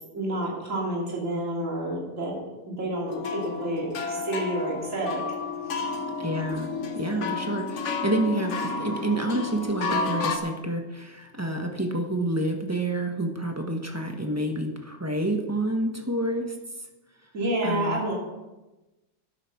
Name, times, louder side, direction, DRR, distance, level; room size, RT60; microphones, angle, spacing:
voice 1, 0.1-5.2 5.7-5.9 7.0-7.3 17.3-18.1, right 1 dB, 40° right, -3 dB, 3.2 m, -30 dB
sound 1, 3.1-10.4, left 4 dB, 45° left, 1.1 m, -31 dB
voice 2, 6.2-16.6 17.6-18.0, right 1 dB, 10° right, 3 dB, 0.9 m, -28 dB
11.5 x 9.9 x 5.9 m, 1.1 s
omnidirectional pair, 2.0 m